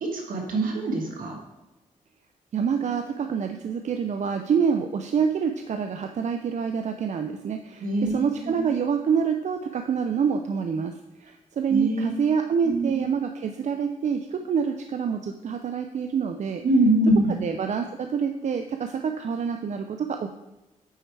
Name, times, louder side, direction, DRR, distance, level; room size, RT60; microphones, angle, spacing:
voice 1, 0.0-1.4 7.8-8.7 11.7-12.2 12.6-13.0 16.6-17.4, right 1 dB, 75° right, 2 dB, 1.3 m, -24 dB
voice 2, 2.5-10.9 11.2-16.6 17.3-20.3, right 6 dB, 55° right, 6 dB, 0.4 m, -27 dB
9.1 x 4.5 x 3.3 m, 1.0 s
cardioid pair, 60°, 15 cm